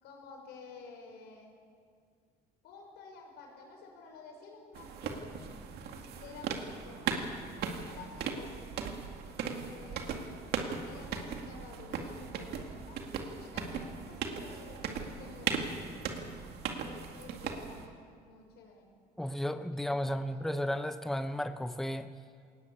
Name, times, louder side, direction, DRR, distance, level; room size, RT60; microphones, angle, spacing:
voice 1, 0.0-1.5 2.6-5.6 6.2-7.3 7.8-9.0 9.2-10.4 10.8-13.0 13.4-16.0 16.8-18.9 19.7-20.4, left 4 dB, 85° left, 1 dB, 6.0 m, -52 dB
sound 1, 4.7-17.9, right 6 dB, 70° right, 2.2 m, -38 dB
voice 2, 19.2-22.1, equal, ahead, 9 dB, 0.8 m, -33 dB
21.5 x 19.0 x 8.6 m, 2.2 s
cardioid pair, 110°, 17 cm